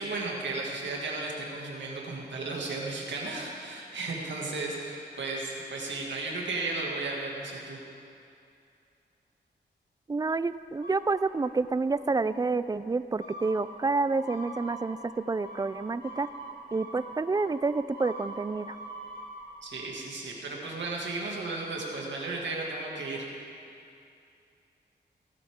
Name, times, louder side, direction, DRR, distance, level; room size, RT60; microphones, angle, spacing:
voice 1, 0.0-7.8 19.6-23.3, right 3 dB, 90° right, -2 dB, 2.1 m, -34 dB
voice 2, 10.1-16.3 16.7-18.8, right 3 dB, 20° right, 14 dB, 0.3 m, -29 dB
sound 1, 10.8-11.6 12.0-12.5 13.2-19.5, right 2 dB, 60° left, 2.7 m, -44 dB
18.0 x 11.5 x 3.7 m, 2.6 s
wide cardioid pair, 90°, 18 cm